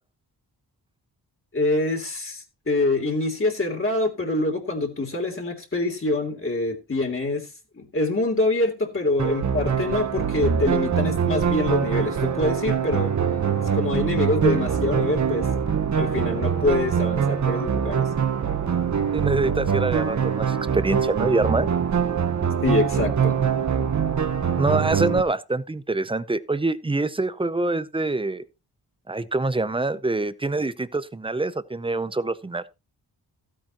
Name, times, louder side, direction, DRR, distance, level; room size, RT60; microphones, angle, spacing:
voice 1, 1.5-7.5 7.7-13.1 13.7-15.5 15.9-18.1 22.6-23.3, left 2 dB, 30° left, 3.1 m, -25 dB
sound 1, 9.2-25.2, right 7 dB, 45° right, 1.0 m, -23 dB
voice 2, 19.1-21.7 24.6-28.4 29.1-32.6, right 2 dB, 15° right, 0.6 m, -25 dB
15.5 x 8.8 x 3.0 m
wide cardioid pair, 155°, 41 cm